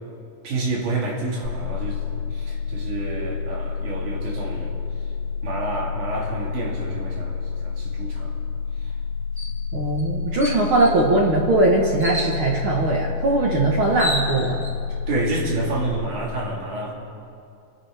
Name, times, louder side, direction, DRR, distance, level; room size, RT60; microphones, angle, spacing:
voice 1, 0.4-2.0 2.3-4.7 5.4-7.4 7.6-8.3 8.8-8.9 15.1-16.9, right 2 dB, 75° right, -3 dB, 3.7 m, -29 dB
sound 1, 1.4-15.9, left 6 dB, 60° left, 2.2 m, -29 dB
sound 2, 9.4-9.6 10.0-10.1 10.4-11.0 12.0-12.4 13.5-13.6 13.8-14.7, left 1 dB, 5° right, 2.2 m, -30 dB
voice 2, 9.7-14.6, right 2 dB, 55° right, -1 dB, 1.6 m, -20 dB
28.5 x 12.5 x 3.5 m, 2.6 s
omnidirectional pair, 3.6 m